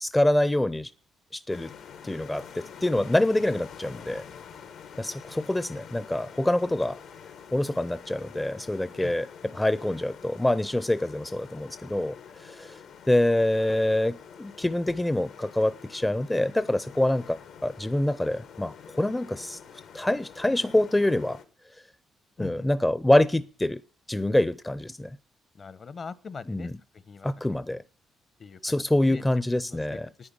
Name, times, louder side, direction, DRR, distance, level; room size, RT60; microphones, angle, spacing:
voice 1, 0.0-0.9 1.3-1.7 2.0-4.2 5.0-7.0 7.5-9.3 9.5-12.8 13.1-19.6 19.9-21.4 22.4-23.8 24.1-25.2 26.5-26.7 27.2-27.8 28.6-30.1, left 1 dB, 10° left, 0.5 m, -25 dB
sound 1, 1.5-21.5, left 7 dB, 75° left, 1.3 m, -47 dB
voice 2, 22.4-22.7 25.6-26.7 27.0-27.3 28.4-28.6 29.0-29.2 29.5-30.3, left 5 dB, 45° left, 0.9 m, -41 dB
9.6 x 9.5 x 8.7 m
cardioid pair, 90°, 0 cm